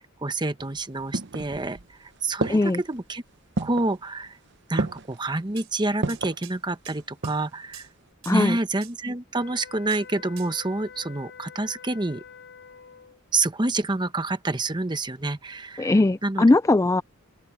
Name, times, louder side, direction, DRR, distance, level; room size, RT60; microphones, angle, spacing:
voice 1, 0.2-3.2 3.6-4.3 4.7-7.9 8.3-12.2 13.3-15.9 16.2-16.4, right 2 dB, 20° right, 0.9 m, -28 dB
sound 1, 0.6-1.9 2.4-2.9 3.6-4.0 4.8-5.2 6.0-6.4 7.0-7.6 7.9-8.0, right 3 dB, 55° right, 0.8 m, -30 dB
voice 2, 2.5-2.8 8.3-8.6 15.8-17.0, left 2 dB, 15° left, 0.3 m, -20 dB
sound 2, 5.6-5.7 6.1-6.6 6.8-7.4 7.7-7.9 8.2-8.4 8.8-8.9 9.9-10.0 10.4-10.5, right 14 dB, 75° right, 6.1 m, -45 dB
sound 3, 9.3-13.2, left 7 dB, 55° left, 4.2 m, -46 dB
head